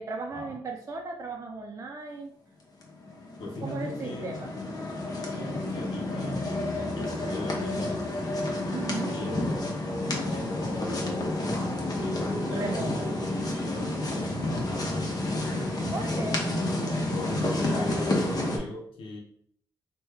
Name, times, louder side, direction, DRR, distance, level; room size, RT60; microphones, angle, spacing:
voice 1, 0.0-2.3 3.6-4.5 8.7-9.1 12.5-13.1 15.9-16.4, right 3 dB, 35° right, 2 dB, 0.4 m, -36 dB
sound 1, 2.8-18.6, left 1 dB, 45° left, 0.8 m, -30 dB
voice 2, 3.4-4.5 5.3-6.4 7.0-8.5 9.1-9.7 10.1-13.1 13.6-15.8 17.1-19.2, left 2 dB, 80° left, 0 dB, 0.6 m, -39 dB
3.1 x 2.1 x 3.4 m, 0.66 s
cardioid pair, 65°, 9 cm